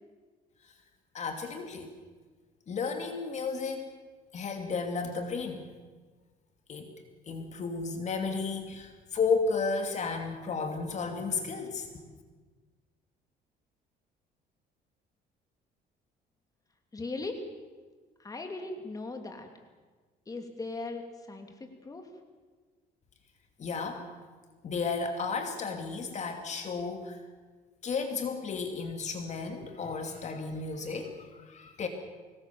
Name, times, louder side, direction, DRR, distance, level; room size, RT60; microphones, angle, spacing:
voice 1, 1.1-1.9 2.7-3.9 4.3-5.7 6.7-6.9 7.3-12.1 23.6-24.1 24.6-27.2 27.8-31.9, left 4 dB, 45° left, 5 dB, 2.6 m, -33 dB
voice 2, 16.9-17.4 18.2-19.5 20.3-22.1, left 3 dB, 20° left, 4 dB, 2.8 m, -39 dB
23.5 x 19.0 x 7.1 m, 1.4 s
cardioid pair, 110°, 17 cm